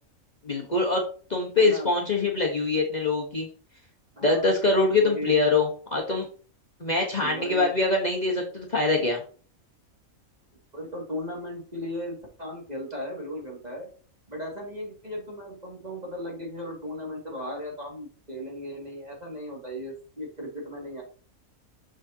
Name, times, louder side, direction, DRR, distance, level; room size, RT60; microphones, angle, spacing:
voice 1, 0.4-1.0 1.3-3.5 4.2-6.3 6.8-9.2, left 3 dB, 35° left, -1 dB, 1.2 m, -24 dB
voice 2, 1.6-1.9 4.2-4.4 5.0-5.4 7.2-7.7 10.7-13.9 14.3-21.0, left 1 dB, 30° right, -2 dB, 2.2 m, -36 dB
6.4 x 6.4 x 2.7 m, 0.40 s
omnidirectional pair, 1.4 m